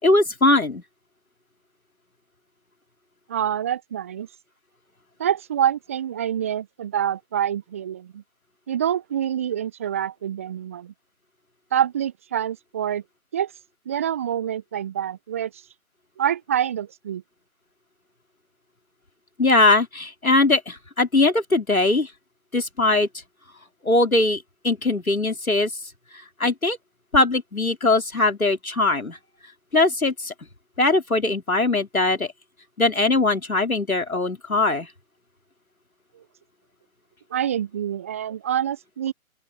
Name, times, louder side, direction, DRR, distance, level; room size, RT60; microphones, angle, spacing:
voice 1, 0.0-0.8 19.4-22.1 22.5-23.1 23.8-25.7 26.4-26.8 27.1-29.2 29.7-30.3 30.8-32.3 32.8-34.9, left 2 dB, 85° left, 3.3 m, -20 dB
voice 2, 3.3-4.3 5.2-8.2 8.7-10.9 11.7-13.0 13.3-13.5 13.9-15.5 16.2-17.2 36.2-36.3 37.3-39.1, right 10 dB, 10° right, 0.8 m, -26 dB
open air
figure-of-eight pair, 145°, 41 cm